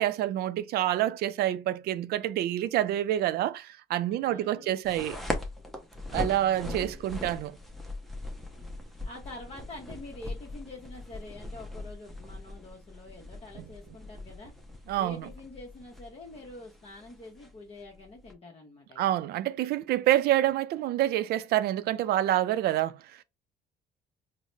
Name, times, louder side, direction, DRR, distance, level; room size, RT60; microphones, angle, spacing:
voice 1, 0.0-5.2 6.1-7.6 14.9-15.3 19.0-23.2, right 13 dB, 70° right, 0.4 m, -27 dB
voice 2, 4.1-4.7 6.2-7.1 9.0-14.5 15.0-19.0, left 2 dB, 35° left, 0.9 m, -46 dB
sound 1, 4.8-18.3, left 1 dB, ahead, 0.6 m, -40 dB
3.9 x 2.1 x 3.2 m
cardioid pair, 110°, 17 cm